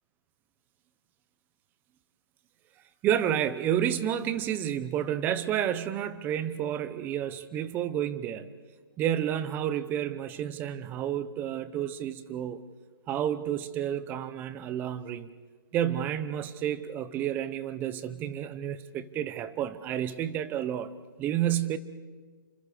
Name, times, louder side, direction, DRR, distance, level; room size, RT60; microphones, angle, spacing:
voice 1, 3.0-8.5 9.0-12.6 13.1-15.3 15.7-20.9 21.2-21.8, right 10 dB, 15° right, 14 dB, 0.8 m, -30 dB
28.5 x 25.5 x 5.0 m, 1.4 s
hypercardioid pair, 155°, 12 cm